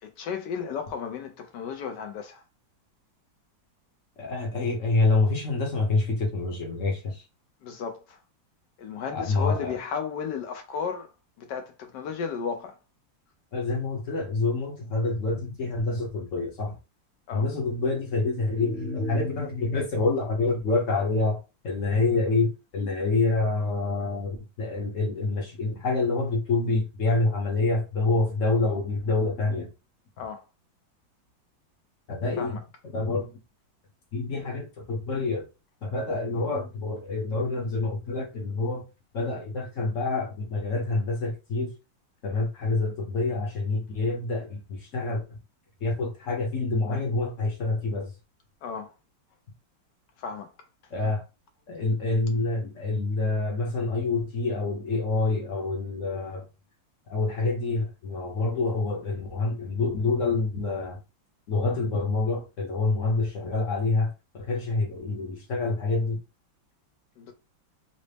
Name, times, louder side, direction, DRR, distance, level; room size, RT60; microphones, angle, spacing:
voice 1, 0.0-2.4 7.6-8.2 8.8-11.1 11.4-12.8 17.3-17.5 30.2-30.4 32.4-32.6 48.6-48.9 50.2-50.5 67.2-67.3, left 6 dB, 70° left, 1.1 m, -34 dB
voice 2, 4.2-7.2 9.1-9.6 13.5-16.8 17.3-29.7 32.1-32.6 32.9-33.3 34.1-35.5 35.8-38.8 39.1-41.7 42.2-45.2 45.8-48.1 50.9-51.2 51.7-56.4 57.1-61.0 61.5-64.1 64.3-66.2, left 3 dB, 50° left, 1.0 m, -27 dB
3.9 x 2.0 x 3.3 m
omnidirectional pair, 2.1 m